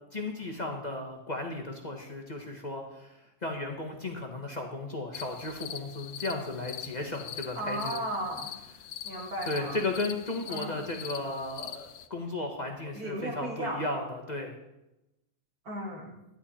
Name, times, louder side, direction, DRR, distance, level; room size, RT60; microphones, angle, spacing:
voice 1, 0.1-8.0 9.4-14.5, left 2 dB, 30° left, 2 dB, 1.3 m, -35 dB
sound 1, 5.1-12.1, left 10 dB, 85° left, 1.2 m, -43 dB
voice 2, 7.6-8.5 9.0-9.8 10.5-10.9 12.9-13.8 15.6-16.1, right 1 dB, 70° right, -1 dB, 3.0 m, -35 dB
13.0 x 10.5 x 4.3 m, 0.91 s
omnidirectional pair, 1.6 m